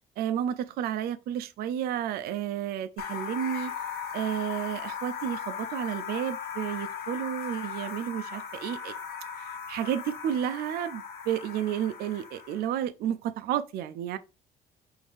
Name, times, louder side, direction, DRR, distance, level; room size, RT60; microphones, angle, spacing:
voice 1, 0.2-3.7 4.1-8.9 9.7-14.2, right 10 dB, 65° right, 0.4 m, -31 dB
sound 1, 3.0-12.7, left 7 dB, 70° left, 1.0 m, -38 dB
5.0 x 2.6 x 3.5 m
cardioid pair, 110°, 17 cm